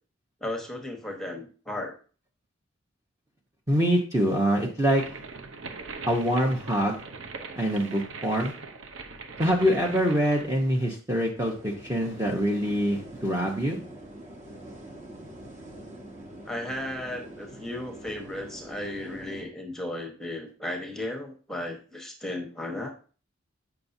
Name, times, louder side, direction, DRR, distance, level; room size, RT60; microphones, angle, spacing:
voice 1, 0.4-1.9 16.4-22.9, left 1 dB, ahead, 2 dB, 1.1 m, -35 dB
voice 2, 3.7-5.0 6.1-7.0 7.6-8.5 9.4-13.8, equal, 15° right, -1 dB, 0.8 m, -25 dB
sound 1, 4.8-10.5, right 4 dB, 70° right, 0.8 m, -41 dB
sound 2, 11.3-19.4, right 1 dB, 35° right, 1.3 m, -44 dB
8.4 x 5.7 x 2.7 m, 0.38 s
head